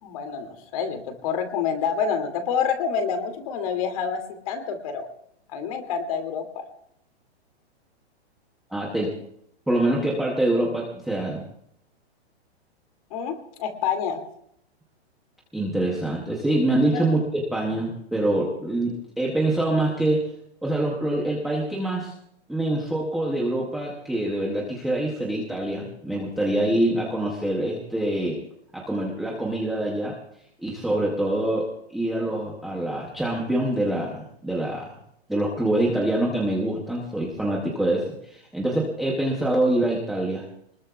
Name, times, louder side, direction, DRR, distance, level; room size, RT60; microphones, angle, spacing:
voice 1, 0.0-5.1 5.5-6.6 13.1-14.2 16.9-17.0, left 6 dB, 30° left, 5 dB, 2.4 m, -28 dB
voice 2, 8.7-9.1 9.7-11.4 15.5-20.3 20.6-22.1 22.5-28.4 28.7-30.1 30.6-34.9 35.3-40.4, right 1 dB, ahead, -4 dB, 0.6 m, -25 dB
24.5 x 20.5 x 2.3 m, 0.71 s
hypercardioid pair, 175°, 34 cm